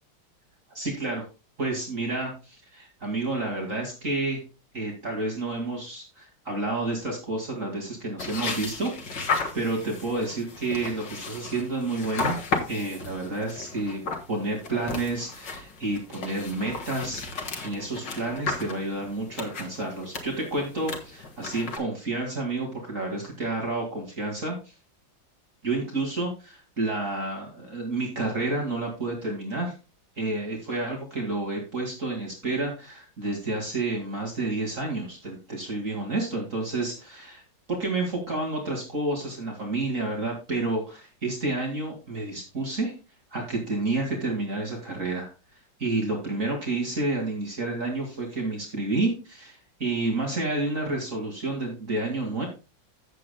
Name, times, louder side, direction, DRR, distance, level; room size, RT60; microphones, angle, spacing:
voice 1, 0.7-1.2 1.6-4.4 4.7-12.4 12.7-14.0 14.3-24.7 25.6-29.7 30.2-37.4 37.7-42.9 43.3-45.3 45.8-52.5, right 2 dB, 45° right, 1 dB, 2.7 m, -30 dB
sound 1, 8.2-21.8, left 4 dB, 75° left, 2.5 m, -34 dB
15.5 x 7.6 x 2.2 m, 0.30 s
omnidirectional pair, 2.0 m